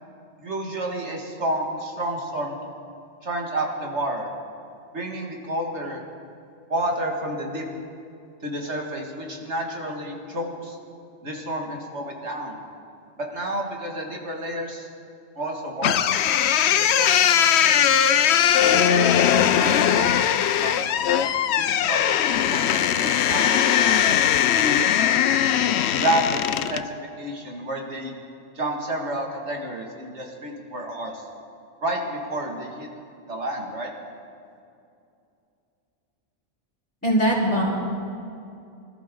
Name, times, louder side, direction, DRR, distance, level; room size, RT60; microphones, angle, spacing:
voice 1, 0.4-2.6 3.2-4.3 4.9-6.0 6.7-7.7 8.4-10.8 11.2-12.6 13.2-14.9 15.4-16.1 16.8-18.0 18.6-20.9 21.6-24.0 24.5-24.9 25.9-28.1 28.5-31.2 31.8-32.9 33.2-33.9, right 1 dB, 75° right, 0 dB, 2.5 m, -30 dB
sound 1, 15.8-26.9, left 9 dB, 70° left, 0.8 m, -20 dB
voice 2, 37.0-37.7, right 1 dB, 10° left, -13 dB, 4.5 m, -20 dB
26.0 x 14.0 x 3.9 m, 2.5 s
omnidirectional pair, 1.2 m